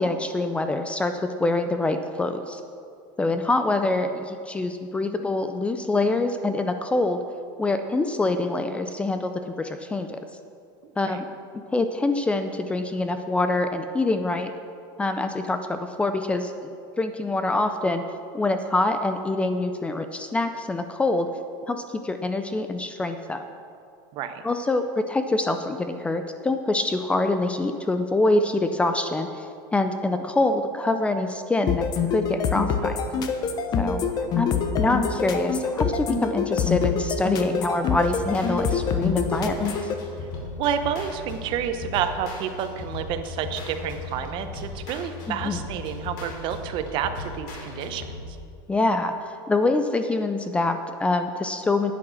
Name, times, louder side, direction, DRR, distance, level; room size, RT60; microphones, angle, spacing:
voice 1, 0.0-2.6 3.2-7.2 7.6-10.2 11.0-11.2 11.7-14.5 15.0-16.5 17.0-18.0 18.3-21.3 21.7-23.4 24.4-33.0 33.8-34.0 34.3-34.5 34.8-39.7 45.3-45.6 48.7-51.9, left 2 dB, 10° left, 8 dB, 0.4 m, -25 dB
voice 2, 24.1-24.4 40.6-48.4, right 8 dB, 45° right, 9 dB, 0.8 m, -29 dB
sound 1, 31.7-39.9, left 6 dB, 35° left, 0.9 m, -25 dB
sound 2, 37.9-48.4, left 3 dB, 75° left, 2.8 m, -37 dB
10.0 x 8.7 x 6.4 m, 2.4 s
supercardioid pair, 145°, 11 cm